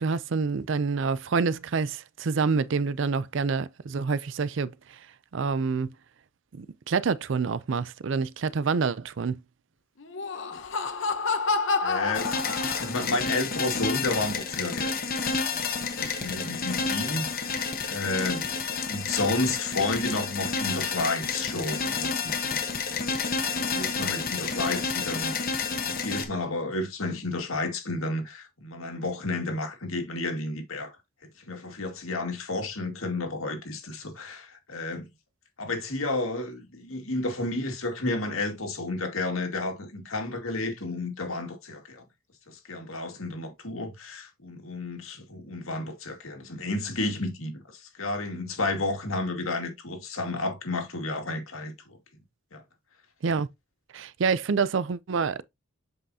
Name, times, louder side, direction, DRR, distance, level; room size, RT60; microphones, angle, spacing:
voice 1, 0.0-5.0 5.3-5.9 6.5-9.4 53.2-53.5 53.9-55.4, right 5 dB, 60° right, 0.4 m, -27 dB
Laughter, 10.0-13.2, left 4 dB, 60° left, 0.9 m, -29 dB
voice 2, 11.8-14.9 15.5-18.6 18.9-23.0 23.4-25.4 25.8-31.0 31.5-35.1 35.6-42.0 42.5-52.0 52.5-52.6, left 2 dB, 80° left, 2.1 m, -32 dB
sound 1, 12.1-26.2, left 5 dB, 45° left, 1.2 m, -30 dB
7.8 x 5.4 x 2.8 m
head